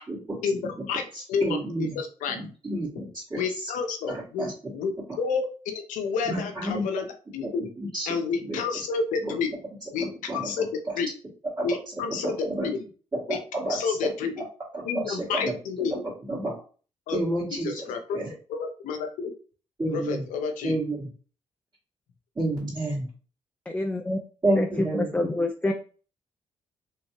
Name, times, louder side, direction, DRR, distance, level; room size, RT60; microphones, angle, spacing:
voice 1, 0.4-1.0 1.3-1.4 1.8-2.4 2.9-3.1 3.4-7.0 7.3-7.6 8.1-9.5 9.9-10.1 10.3-10.7 10.9-11.1 11.6-12.8 13.3-13.4 13.6-14.5 14.8-15.9 17.1-17.2 17.6-18.2 18.5-19.3 19.9-20.7, left 5 dB, 85° left, 5 dB, 0.6 m, -29 dB
voice 2, 1.4-2.0 2.3-3.4 4.4-4.5 6.3-6.8 7.9-8.1 8.4-8.6 9.2-9.3 10.3-10.7 11.6-11.7 12.2-12.7 13.3-14.0 14.7-15.5 16.3-16.5 17.1-17.8 18.1-18.3 19.8-20.2 20.6-21.1 22.4-23.1 24.4-25.1, right 1 dB, 30° right, -8 dB, 1.7 m, -29 dB
voice 3, 23.7-24.2 24.6-25.7, left 1 dB, 10° left, 4 dB, 0.4 m, -27 dB
3.2 x 2.7 x 2.9 m, 0.39 s
supercardioid pair, 65°, 13 cm